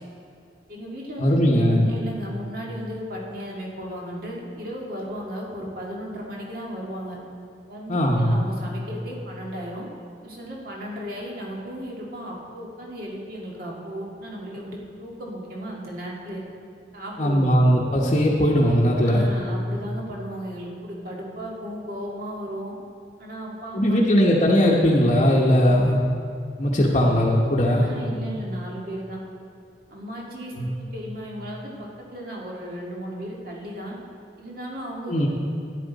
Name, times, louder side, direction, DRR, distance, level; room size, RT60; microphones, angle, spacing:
voice 1, 0.7-7.2 7.7-9.9 10.2-16.4 16.9-17.6 19.0-22.8 23.2-24.2 27.8-29.2 29.9-34.0 34.4-35.3, equal, 55° right, -3 dB, 2.0 m, -35 dB
voice 2, 1.2-1.9 7.9-8.4 17.2-19.2 23.7-26.0 26.6-27.9 30.6-30.7 35.1-35.3, equal, 35° left, -5 dB, 1.0 m, -19 dB
13.0 x 10.0 x 4.0 m, 2.5 s
head